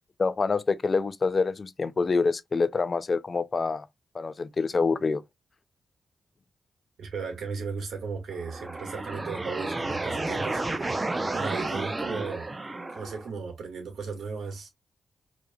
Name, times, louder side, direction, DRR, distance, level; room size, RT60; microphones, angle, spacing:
voice 1, 0.2-3.9 4.1-5.2, left 4 dB, 45° left, 0.5 m, -26 dB
voice 2, 7.0-11.1 11.3-12.5 12.9-14.7, right 5 dB, 75° right, 1.8 m, -36 dB
sound 1, 8.3-13.3, right 2 dB, 25° right, 0.8 m, -32 dB
4.7 x 3.1 x 2.3 m
supercardioid pair, 55°, 0 cm